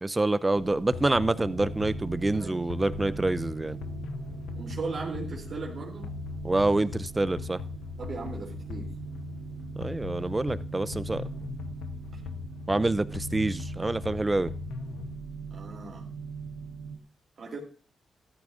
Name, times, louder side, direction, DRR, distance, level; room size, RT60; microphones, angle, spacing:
voice 1, 0.0-3.8 6.4-7.6 9.8-11.3 12.7-14.5, right 2 dB, 25° right, 15 dB, 0.6 m, -27 dB
sound 1, 0.5-17.0, right 5 dB, 85° right, 1.1 m, -41 dB
sound 2, 0.9-15.1, left 7 dB, 85° left, 0.5 m, -40 dB
voice 2, 4.6-6.1 8.0-8.9 15.5-16.0 17.4-17.6, right 3 dB, 60° right, -2 dB, 3.2 m, -37 dB
13.5 x 12.0 x 2.6 m, 0.37 s
supercardioid pair, 45°, 0 cm